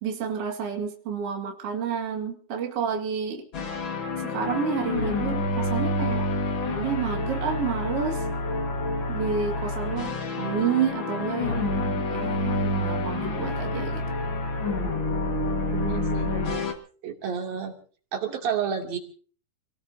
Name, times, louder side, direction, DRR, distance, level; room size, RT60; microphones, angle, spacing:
voice 1, 0.0-3.5 4.2-6.3 6.7-8.2 9.1-14.0, right 7 dB, 45° right, 1 dB, 2.6 m, -30 dB
sound 1, 3.5-16.7, left 2 dB, 45° left, 1.8 m, -28 dB
voice 2, 15.7-16.7 17.0-17.8 18.1-19.0, right 7 dB, 70° right, 1 dB, 4.4 m, -30 dB
29.0 x 18.0 x 2.7 m, 0.43 s
omnidirectional pair, 4.3 m